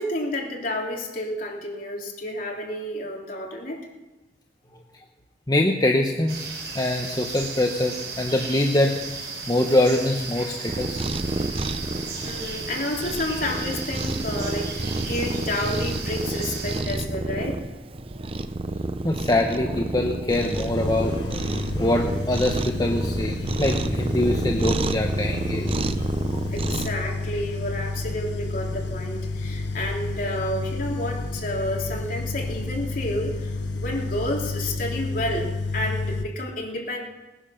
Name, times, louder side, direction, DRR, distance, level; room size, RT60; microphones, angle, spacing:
voice 1, 0.0-3.8 11.8-12.0 12.2-17.6 26.5-37.0, left 1 dB, 50° left, -1 dB, 3.2 m, -30 dB
voice 2, 5.5-6.5 6.7-9.0 9.5-11.0 19.0-25.8, left 1 dB, 20° left, 2 dB, 0.9 m, -24 dB
sound 1, 6.3-16.8, right 4 dB, 70° right, 4.0 m, -35 dB
Cat, 10.7-26.9, right 2 dB, 30° right, 0.7 m, -29 dB
sound 2, 20.3-36.2, left 3 dB, 80° left, 1.2 m, -31 dB
19.0 x 10.0 x 6.4 m, 1.1 s
head